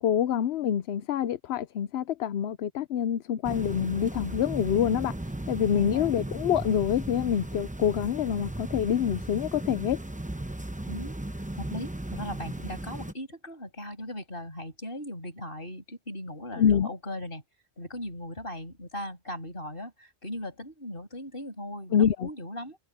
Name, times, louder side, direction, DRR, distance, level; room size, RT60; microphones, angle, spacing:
voice 1, 0.0-5.1 5.5-10.0 16.6-16.9 21.9-22.3, left 9 dB, 80° left, 0.9 m, -26 dB
sound 1, 3.4-13.1, right 1 dB, 10° right, 0.8 m, -36 dB
voice 2, 5.7-6.1 10.9-11.2 11.6-17.4 17.8-22.8, left 1 dB, 55° left, 6.7 m, -38 dB
omnidirectional pair, 1.1 m